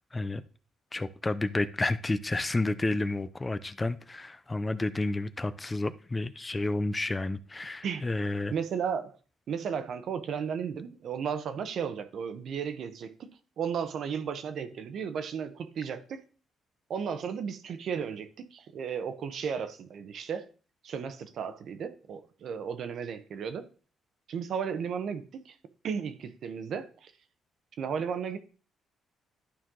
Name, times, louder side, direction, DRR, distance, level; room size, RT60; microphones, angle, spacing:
voice 1, 0.1-0.4 0.9-8.5, left 2 dB, 20° left, 0.5 m, -30 dB
voice 2, 8.5-9.1 9.5-13.3 13.6-16.2 16.9-20.5 20.8-23.7 24.3-25.5 25.8-27.1 27.8-28.4, right 7 dB, 65° right, 1.0 m, -34 dB
11.5 x 4.6 x 3.8 m
cardioid pair, 90°, 0 cm